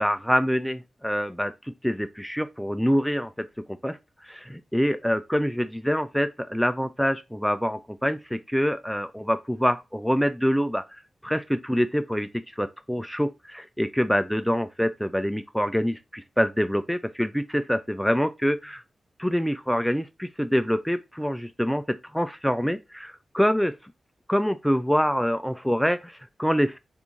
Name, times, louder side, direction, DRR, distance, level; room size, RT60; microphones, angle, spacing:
voice 1, 0.0-4.0 4.3-10.8 11.2-12.3 12.6-18.8 19.2-23.8 24.3-26.8, equal, ahead, 0.5 m, -25 dB
3.4 x 2.6 x 3.0 m
cardioid pair, 55°, 0 cm